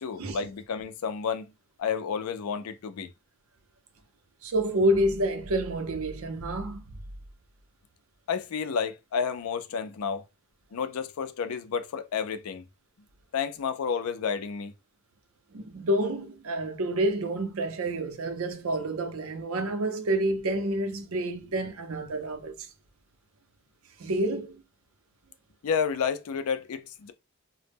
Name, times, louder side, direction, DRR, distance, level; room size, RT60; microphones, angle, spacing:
voice 1, 0.0-1.5 1.8-3.1 8.3-10.2 10.7-12.6 13.3-14.7 25.6-27.1, left 6 dB, 85° left, 0.4 m, -31 dB
voice 2, 4.4-6.8 15.5-22.7 24.0-24.6, right 1 dB, 75° right, 0.6 m, -28 dB
2.0 x 2.0 x 3.3 m
head